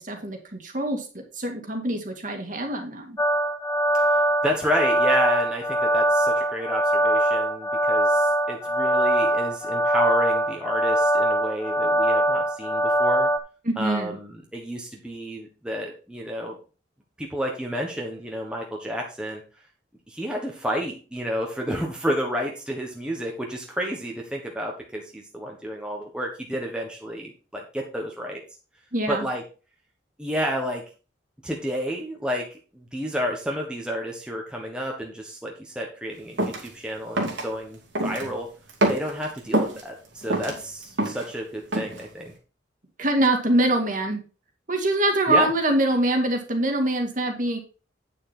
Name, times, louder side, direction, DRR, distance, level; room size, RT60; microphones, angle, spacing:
voice 1, 0.0-3.2 13.7-14.2 28.9-29.3 43.0-44.2 44.7-47.6, right 1 dB, 45° right, 4 dB, 2.1 m, -24 dB
sound 1, 3.2-13.4, right 1 dB, 15° left, 0.6 m, -22 dB
voice 2, 3.9-13.3 13.8-16.6 17.2-19.4 20.1-28.4 29.1-29.4 30.2-30.8 31.4-38.5 38.9-42.3 45.3-45.5, equal, 5° right, 0 dB, 1.3 m, -30 dB
sound 2, 36.4-36.7 37.2-37.4 37.9-38.3 38.7-39.8 40.2-41.3 41.7-42.0, right 1 dB, 80° right, 2.6 m, -25 dB
9.4 x 6.5 x 4.3 m, 0.34 s
head